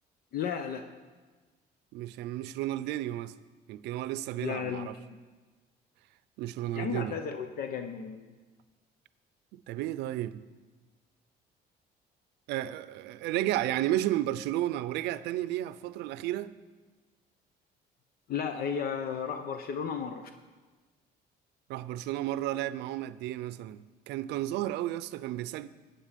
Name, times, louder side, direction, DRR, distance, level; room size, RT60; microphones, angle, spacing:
voice 1, 0.3-0.9 4.4-5.2 6.7-8.3 18.3-20.3, left 7 dB, 60° left, 0.9 m, -34 dB
voice 2, 1.9-3.3 3.7-4.9 6.4-7.2 9.5-10.4 12.5-16.5 21.7-25.7, right 14 dB, 90° right, 0.5 m, -32 dB
16.0 x 8.8 x 5.2 m
cardioid pair, 110°, 17 cm